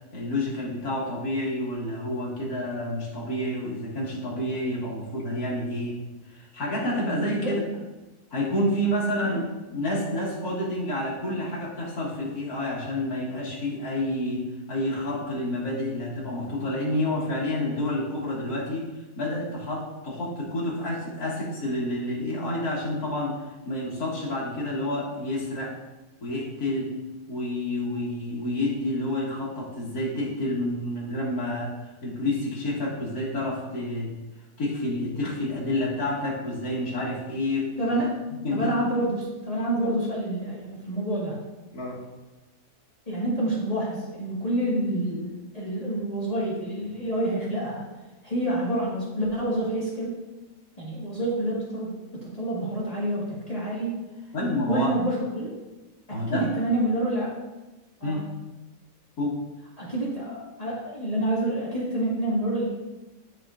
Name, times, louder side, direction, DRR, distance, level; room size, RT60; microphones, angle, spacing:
voice 1, 0.0-6.0 6.3-7.6 8.3-9.4 9.7-18.8 19.2-25.8 26.2-27.0 27.3-31.7 32.0-34.1 34.6-37.7 38.4-38.7 41.7-42.0 54.3-54.9 56.1-56.5 58.0-58.2 59.2-59.4, left 1 dB, 75° left, -5 dB, 2.4 m, -29 dB
voice 2, 37.8-38.1 38.5-41.4 43.1-47.8 48.2-50.2 50.8-53.9 54.7-55.6 56.1-57.3 58.0-58.2 59.8-62.7, right 1 dB, 25° left, -8 dB, 1.7 m, -28 dB
12.5 x 4.6 x 2.5 m, 1.1 s
omnidirectional pair, 1.6 m